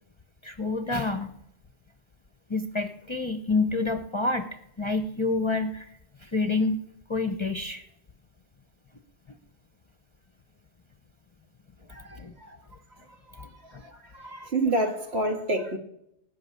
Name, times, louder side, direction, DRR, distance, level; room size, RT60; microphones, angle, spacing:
voice 1, 0.4-1.3 2.5-4.5 4.8-5.9 6.2-6.8 7.1-7.8 12.1-12.3 13.4-13.8, left 3 dB, 30° left, 0.7 m, -28 dB
voice 2, 11.9-12.6 13.3-15.8, right 1 dB, 70° right, 2.1 m, -29 dB
18.5 x 6.4 x 9.6 m
omnidirectional pair, 1.1 m